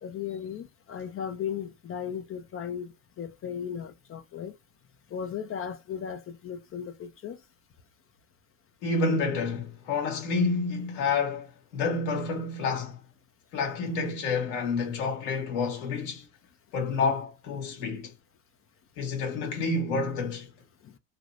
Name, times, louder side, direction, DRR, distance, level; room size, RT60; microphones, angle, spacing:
voice 1, 0.0-2.9 3.2-4.5 5.1-7.4, left 8 dB, 35° left, 0.5 m, -36 dB
voice 2, 8.8-13.0 13.5-16.2 16.7-18.1 19.0-20.5, left 4 dB, 70° left, 1.6 m, -29 dB
3.3 x 2.9 x 2.5 m
hypercardioid pair, 75°, 41 cm